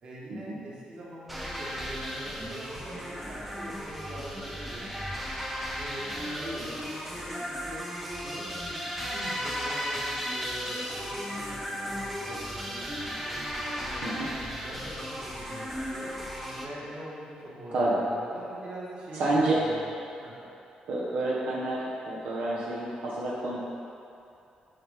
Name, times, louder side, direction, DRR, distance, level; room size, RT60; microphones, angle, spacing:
voice 1, 0.0-5.2 5.7-7.9 8.2-14.0 14.6-16.1 16.6-19.9 20.2-20.4, right 1 dB, 45° right, -7 dB, 1.9 m, -44 dB
sound 1, 1.3-16.7, equal, 5° right, 0.9 m, -35 dB
voice 2, 17.7-18.0 19.1-19.6 20.8-23.6, right 2 dB, 80° right, -7 dB, 1.3 m, -29 dB
11.0 x 4.9 x 3.8 m, 2.8 s
cardioid pair, 150°, 3 cm